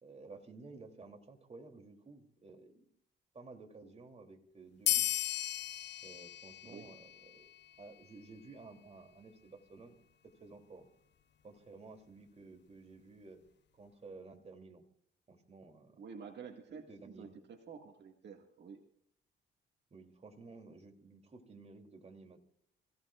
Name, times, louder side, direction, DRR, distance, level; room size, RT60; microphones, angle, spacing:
voice 1, 0.0-2.8 3.3-5.1 6.0-7.5 7.8-10.0 10.2-10.9 11.4-13.4 13.8-14.8 15.3-16.0 16.7-17.4 19.9-22.5, right 3 dB, 30° right, 4 dB, 3.1 m, -54 dB
sound 1, 4.9-7.9, left 12 dB, 65° left, 0.8 m, -36 dB
voice 2, 16.0-18.9, right 6 dB, 60° right, 3 dB, 1.9 m, -50 dB
26.5 x 16.5 x 2.5 m, 0.65 s
cardioid pair, 90°, 20 cm